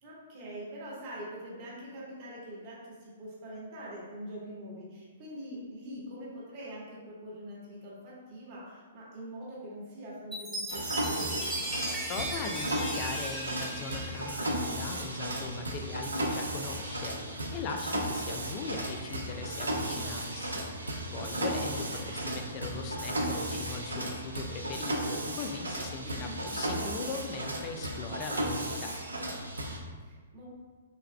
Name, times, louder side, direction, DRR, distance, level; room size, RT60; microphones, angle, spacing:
voice 1, 0.0-11.5 21.5-21.9 26.0-26.5 30.0-30.4, equal, 40° right, -6 dB, 1.2 m, -44 dB
Chime, 10.3-14.9, right 1 dB, 5° right, 0.7 m, -37 dB
Mechanisms, 10.7-29.8, right 1 dB, 85° right, 0.5 m, -35 dB
voice 2, 12.1-29.0, left 4 dB, 35° left, 5 dB, 0.4 m, -40 dB
6.6 x 2.3 x 2.2 m, 1.5 s
figure-of-eight pair, 115°, 0 cm